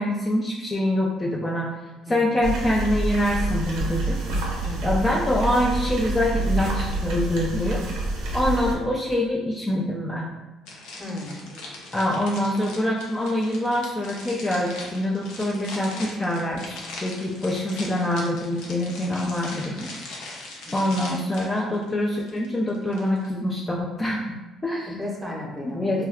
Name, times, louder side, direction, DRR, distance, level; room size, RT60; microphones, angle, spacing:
voice 1, 0.0-1.7 2.1-4.2 4.8-7.8 8.3-10.3 11.9-19.9 20.7-24.4 24.6-24.9 25.7-26.0, left 1 dB, 20° left, -3 dB, 0.4 m, -25 dB
voice 2, 2.1-2.4 4.6-5.1 11.0-11.4 20.6-20.9 24.9-26.1, left 1 dB, 10° right, -2 dB, 0.8 m, -35 dB
sound 1, 2.4-8.8, right 2 dB, 75° right, 0.5 m, -27 dB
sound 2, 10.7-23.3, left 2 dB, 80° left, 0.6 m, -40 dB
2.3 x 2.2 x 3.4 m, 1.1 s
supercardioid pair, 75°, 0 cm